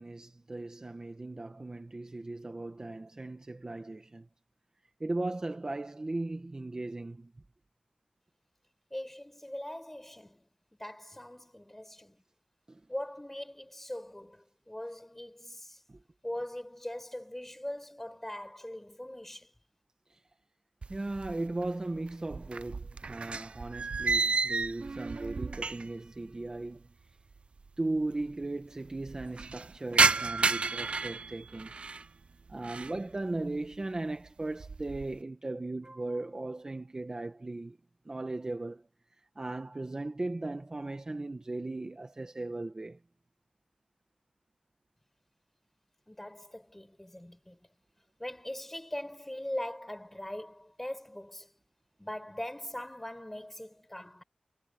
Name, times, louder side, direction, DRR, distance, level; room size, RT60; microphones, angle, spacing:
voice 1, 0.0-4.2 5.0-7.3 20.9-26.8 27.8-31.7 32.5-37.8 38.0-38.8 39.3-43.0, right 2 dB, 30° right, 1.5 m, -37 dB
voice 2, 8.9-10.4 10.8-12.2 12.9-15.8 16.2-19.5 46.1-47.6 48.2-51.5 52.0-54.2, left 1 dB, 10° left, 5.1 m, -41 dB
sound 1, 20.8-21.7 22.0-26.1 26.3-26.4 27.3-27.4 27.6-27.7 28.0-28.5 28.9-32.1 32.5-33.0 33.5-33.8 34.3-35.2, right 4 dB, 55° right, 0.5 m, -31 dB
wide cardioid pair, 105°, 2 cm